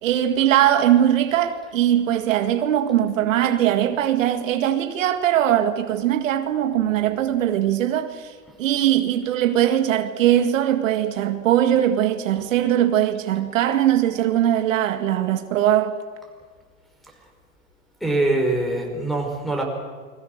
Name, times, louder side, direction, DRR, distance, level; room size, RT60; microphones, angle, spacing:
voice 1, 0.0-8.3 8.6-16.0, right 11 dB, 75° right, 2.1 m, -20 dB
voice 2, 18.0-19.6, right 2 dB, ahead, 5.2 m, -23 dB
29.0 x 22.0 x 6.7 m
supercardioid pair, 140°, 39 cm